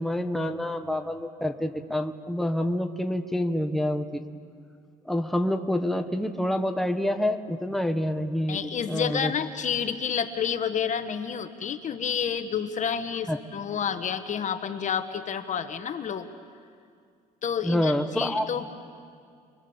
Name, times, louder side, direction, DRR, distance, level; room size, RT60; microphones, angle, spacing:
voice 1, 0.0-4.2 5.1-9.3 13.3-13.4 17.6-18.5, left 1 dB, ahead, 6 dB, 1.3 m, -27 dB
voice 2, 8.5-16.3 17.4-18.6, left 7 dB, 45° left, 9 dB, 1.3 m, -29 dB
29.0 x 23.0 x 7.2 m, 2.3 s
cardioid pair, 110°, 17 cm